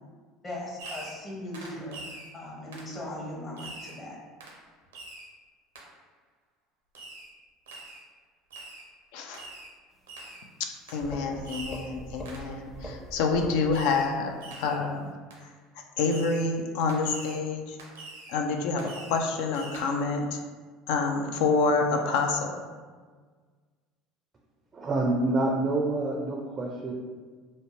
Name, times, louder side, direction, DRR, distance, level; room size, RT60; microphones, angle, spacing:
voice 1, 0.4-4.2, left 1 dB, 35° left, -3 dB, 1.0 m, -39 dB
Fireworks, 0.8-1.3 1.5-2.3 2.7-2.9 3.6-4.0 4.4-4.6 4.9-5.3 5.7-5.9 6.9-7.3 7.7-8.0 8.5-8.9 9.3-9.7 10.1-10.4 10.9-11.0 11.4-11.9 12.2-12.5 13.7-14.1 14.4-14.8 15.3-15.4 16.1-16.5 16.9-17.4 17.8-18.4 18.8-19.2 19.5-19.8, right 2 dB, 85° right, 0.5 m, -44 dB
voice 2, 10.6-14.3 14.6-15.1 16.0-17.8 18.3-20.4 20.9-22.6, left 4 dB, 70° left, 3 dB, 0.3 m, -27 dB
sound 1, 10.7-10.8 11.0-12.4 12.7-13.8, equal, 15° left, 0.7 m, -41 dB
voice 3, 24.7-26.9, right 2 dB, 35° right, 0 dB, 0.4 m, -27 dB
2.6 x 2.1 x 3.1 m, 1.5 s
hypercardioid pair, 75°, 0 cm